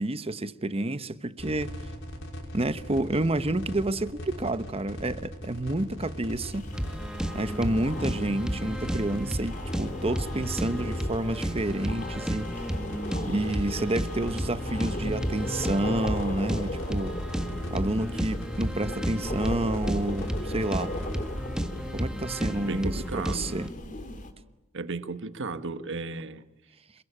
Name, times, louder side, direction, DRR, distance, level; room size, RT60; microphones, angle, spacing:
voice 1, 0.0-1.7 2.5-6.7 7.3-12.6 13.2-17.2 17.7-20.9 21.9-23.7, right 1 dB, 25° right, 1.1 m, -29 dB
sound 1, 1.4-21.4, equal, 65° left, 5.6 m, -40 dB
sound 2, 6.3-24.3, left 1 dB, 35° left, 2.8 m, -37 dB
sound 3, 6.7-23.7, equal, 5° right, 1.6 m, -33 dB
voice 2, 22.7-23.4 24.7-26.4, right 3 dB, 60° right, 1.4 m, -34 dB
27.5 x 22.5 x 8.8 m
head